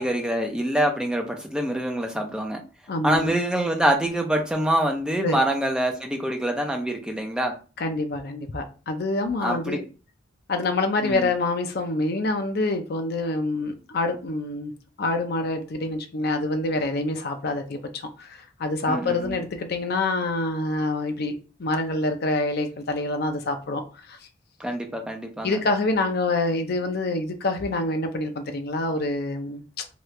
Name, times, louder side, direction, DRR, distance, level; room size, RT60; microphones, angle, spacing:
voice 1, 0.0-2.6 3.0-7.5 9.4-9.8 11.0-11.3 18.9-19.4 24.6-25.6, right 1 dB, 5° right, 3 dB, 0.5 m, -25 dB
voice 2, 2.9-3.3 5.2-5.4 7.8-9.8 10.5-14.7 15.0-21.3 21.6-24.2 25.4-29.6, left 2 dB, 50° left, 6 dB, 0.5 m, -26 dB
3.0 x 2.4 x 3.1 m, 0.34 s
head